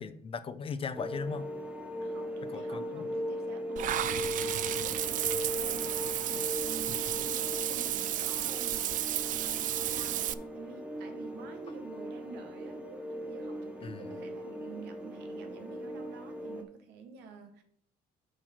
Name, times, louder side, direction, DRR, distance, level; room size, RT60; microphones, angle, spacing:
voice 1, 0.0-1.5 2.5-3.0 13.8-14.3, left 5 dB, 35° left, 0.6 m, -38 dB
sound 1, 1.0-16.6, equal, 5° right, 1.0 m, -39 dB
voice 2, 2.0-12.9 13.2-17.6, right 5 dB, 90° right, 1.2 m, -49 dB
Bird, 2.8-15.8, right 3 dB, 65° right, 2.7 m, -58 dB
Water / Bathtub (filling or washing), 3.8-10.3, right 12 dB, 50° right, 0.4 m, -32 dB
6.5 x 4.4 x 5.7 m
cardioid pair, 110°, 17 cm